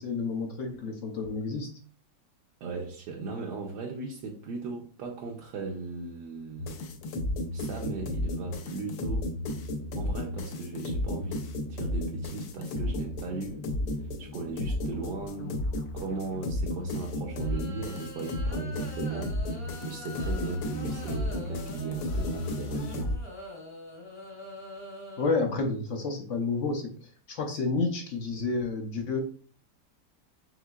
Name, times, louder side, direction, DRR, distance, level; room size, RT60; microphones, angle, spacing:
voice 1, 0.0-1.7 25.2-26.9 27.3-29.2, left 3 dB, 60° left, 0.8 m, -30 dB
voice 2, 2.6-6.7 7.5-9.3 10.0-11.4 11.7-13.6 14.0-15.6 15.9-23.2, right 4 dB, 75° right, 1.2 m, -37 dB
sound 1, 6.6-23.2, left 1 dB, 80° left, 1.3 m, -33 dB
sound 2, 17.3-25.4, left 1 dB, 30° left, 0.6 m, -45 dB
5.6 x 3.1 x 2.3 m
omnidirectional pair, 1.9 m